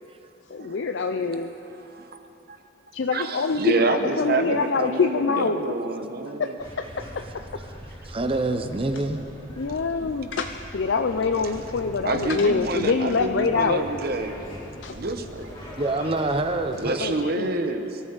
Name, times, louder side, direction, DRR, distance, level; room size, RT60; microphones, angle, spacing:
voice 1, 0.5-1.5 2.9-3.6 3.9-5.6 6.4-7.2 9.6-13.9 14.8-15.0 17.0-17.6, left 4 dB, 65° left, 7 dB, 0.5 m, -25 dB
voice 2, 1.7-2.1 2.5-2.6 3.1-6.5 9.7-9.8 12.0-14.5 14.9-15.5 16.8-18.0, right 2 dB, 50° right, 7 dB, 1.0 m, -28 dB
sound 1, 6.6-17.0, equal, 20° left, 3.0 m, -41 dB
voice 3, 8.0-9.2 15.8-17.2, right 2 dB, 30° right, 8 dB, 0.7 m, -26 dB
23.0 x 13.5 x 4.0 m, 2.9 s
head